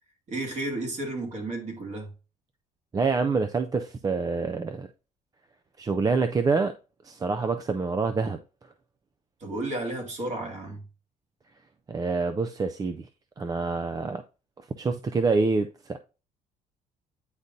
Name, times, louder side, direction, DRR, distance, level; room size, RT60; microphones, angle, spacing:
voice 1, 0.3-2.1 9.4-10.8, right 2 dB, 45° right, 2.3 m, -32 dB
voice 2, 2.9-4.9 5.8-6.7 7.0-8.4 11.9-13.1 13.4-14.2 14.8-16.0, right 4 dB, 20° right, 0.4 m, -26 dB
9.4 x 3.8 x 2.7 m
cardioid pair, 110°, 17 cm